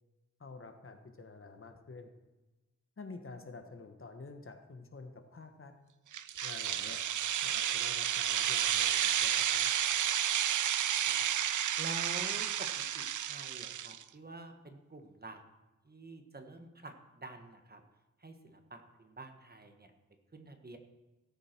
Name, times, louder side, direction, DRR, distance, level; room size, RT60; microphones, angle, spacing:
voice 1, 0.4-2.1 3.0-5.7 6.4-7.0 7.4-9.7, left 3 dB, 45° left, 6 dB, 1.4 m, -49 dB
sound 1, 6.1-14.0, right 10 dB, 85° right, 0.5 m, -31 dB
voice 2, 11.5-15.4 15.8-17.8 18.2-19.9 20.3-20.8, right 2 dB, 30° right, 5 dB, 1.4 m, -48 dB
17.0 x 8.0 x 4.5 m, 1.1 s
wide cardioid pair, 90°, 30 cm